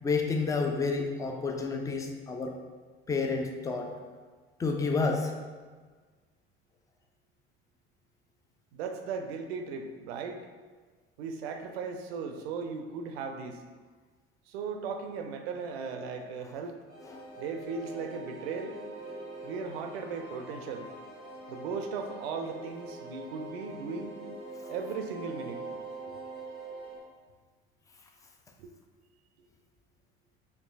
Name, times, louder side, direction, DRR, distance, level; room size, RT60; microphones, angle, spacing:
voice 1, 0.0-2.5 3.1-3.9 4.6-5.3 17.1-17.3, left 4 dB, 10° left, 3 dB, 0.3 m, -30 dB
voice 2, 8.7-10.4 11.2-13.6 14.5-16.8 17.4-18.8 19.4-20.9 21.5-24.2 24.7-25.6 26.1-26.2 28.6-28.7, right 5 dB, 65° right, 5 dB, 0.5 m, -37 dB
sound 1, 16.9-27.0, right 2 dB, 85° left, 0.8 m, -44 dB
4.5 x 2.6 x 2.5 m, 1.5 s
figure-of-eight pair, 60°, 34 cm